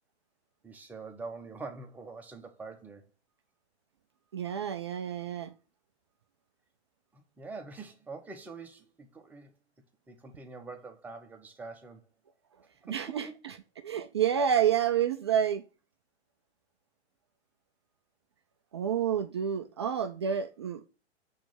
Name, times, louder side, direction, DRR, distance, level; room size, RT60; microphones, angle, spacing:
voice 1, 0.6-3.0 7.1-9.5 10.1-12.0 12.9-13.3, right 4 dB, 5° right, 0.8 m, -44 dB
voice 2, 4.3-5.5 12.9-13.6 13.8-15.6 18.7-20.8, right 8 dB, 25° right, 0.4 m, -29 dB
9.9 x 3.3 x 6.5 m
figure-of-eight pair, 115°, 34 cm